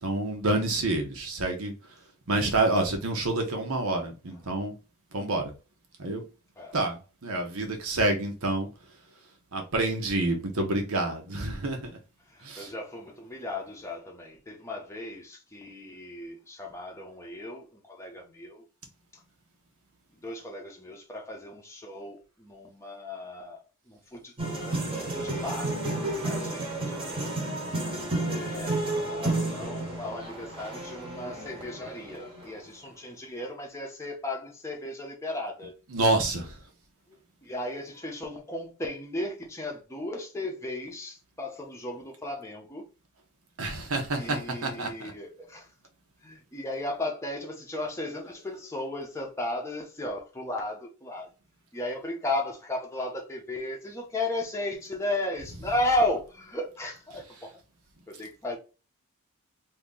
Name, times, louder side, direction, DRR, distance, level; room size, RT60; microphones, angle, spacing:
voice 1, 0.0-1.7 2.3-4.7 5.1-5.5 6.0-6.2 6.7-8.7 9.5-11.9 12.4-12.7 35.9-36.5 43.6-44.9, right 2 dB, 70° right, 0.9 m, -28 dB
voice 2, 12.3-18.6 20.2-23.6 23.9-27.3 28.3-35.7 37.4-42.8 44.1-45.7 46.2-51.3 51.7-57.5 58.1-58.6, left 1 dB, 15° left, 0.8 m, -35 dB
sound 1, 24.4-32.5, right 2 dB, 25° right, 1.0 m, -32 dB
2.9 x 2.7 x 3.7 m
head